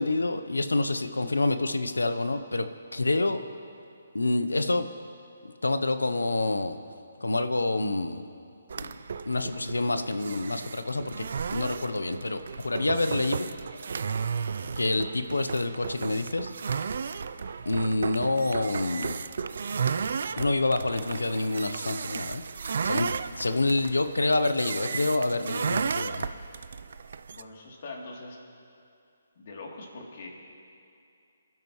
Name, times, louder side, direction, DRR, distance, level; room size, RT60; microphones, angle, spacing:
voice 1, 0.0-2.7 2.9-3.4 4.1-4.9 5.4-6.8 7.2-8.3 8.7-8.9 9.3-13.5 14.8-16.5 17.7-19.2 20.4-22.4 22.8-23.1 23.4-26.3, left 2 dB, 90° left, 10 dB, 0.8 m, -27 dB
sound 1, 8.7-27.4, right 6 dB, 60° right, 0.5 m, -34 dB
voice 2, 27.3-28.4 29.4-30.3, left 3 dB, 50° left, -2 dB, 3.1 m, -42 dB
27.5 x 12.0 x 3.2 m, 2.5 s
figure-of-eight pair, 145°, 0 cm